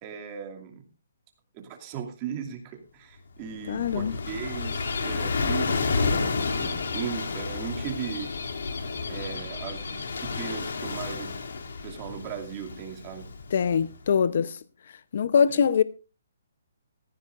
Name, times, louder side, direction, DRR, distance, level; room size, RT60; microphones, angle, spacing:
voice 1, 0.0-0.8 1.5-8.3 9.1-11.4 11.8-13.3 15.5-15.7, right 8 dB, 25° right, 2.5 m, -37 dB
Gull seagull / Waves surf, 3.4-14.0, left 4 dB, 80° left, 2.8 m, -31 dB
voice 2, 3.7-4.1 13.5-14.6 15.1-15.8, left 7 dB, 55° left, 0.8 m, -23 dB
17.5 x 14.5 x 2.6 m
hypercardioid pair, 165°, 0 cm